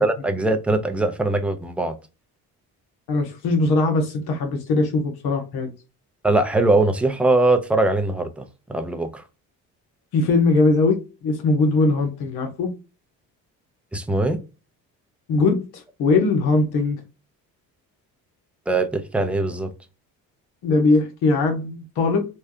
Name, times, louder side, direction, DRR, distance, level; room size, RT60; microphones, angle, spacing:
voice 1, 0.0-2.0 6.2-9.2 13.9-14.4 18.7-19.7, right 2 dB, 5° right, 0.5 m, -21 dB
voice 2, 3.1-5.7 10.1-11.0 11.2-12.7 15.3-15.6 16.0-17.0 20.6-22.3, left 3 dB, 75° left, 1.2 m, -20 dB
3.3 x 2.3 x 2.7 m
supercardioid pair, 85°, 38 cm